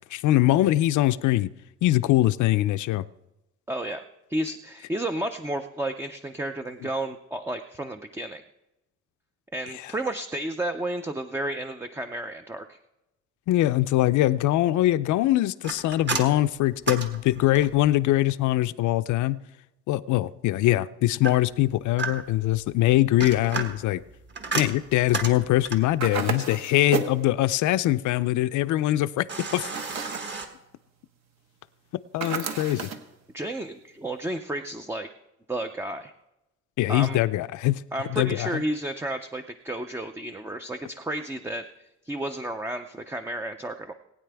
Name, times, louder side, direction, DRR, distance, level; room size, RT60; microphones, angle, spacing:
voice 1, 0.1-1.5 1.8-3.0 13.5-19.4 19.9-24.0 24.5-29.3 29.5-29.7 32.1-32.9 36.8-37.8 38.1-38.6, left 15 dB, 70° left, 14 dB, 0.5 m, -22 dB
voice 2, 3.7-4.0 4.3-8.4 9.5-12.8 33.3-35.1 35.5-36.1 36.9-37.2 37.9-41.7 42.0-43.9, right 1 dB, 10° right, 7 dB, 0.4 m, -32 dB
sound 1, 15.6-17.9 21.2-22.5 23.0-26.0 29.3-30.5, right 4 dB, 35° right, 1.5 m, -33 dB
sound 2, 26.0-27.2 29.6-30.3 32.2-33.1, right 6 dB, 60° right, 1.3 m, -31 dB
20.0 x 9.3 x 3.4 m, 0.94 s
cardioid pair, 140°, 31 cm